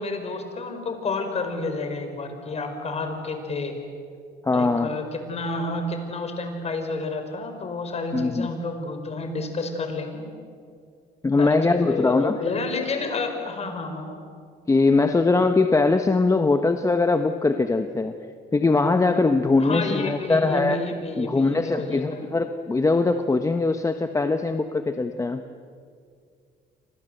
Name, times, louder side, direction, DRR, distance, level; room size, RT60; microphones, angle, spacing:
voice 1, 0.0-3.8 4.5-10.3 11.4-14.2 19.6-22.2, left 3 dB, 40° left, 6 dB, 5.1 m, -30 dB
voice 2, 4.4-4.9 8.1-8.5 11.2-12.4 14.7-18.1 18.5-20.9 21.2-25.4, left 3 dB, 20° left, 7 dB, 1.1 m, -21 dB
29.5 x 25.0 x 8.0 m, 2.2 s
cardioid pair, 110°, 17 cm